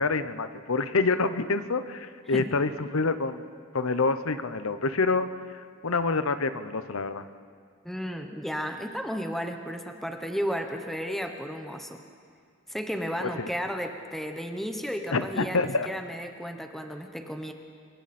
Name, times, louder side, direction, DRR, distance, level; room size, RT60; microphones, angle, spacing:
voice 1, 0.0-3.5 3.7-5.3 5.8-7.2 13.2-13.5 15.1-15.9, left 3 dB, 85° left, 11 dB, 0.9 m, -27 dB
voice 2, 7.8-12.0 12.7-17.5, equal, ahead, 5 dB, 1.0 m, -33 dB
27.0 x 22.0 x 4.3 m, 2.2 s
head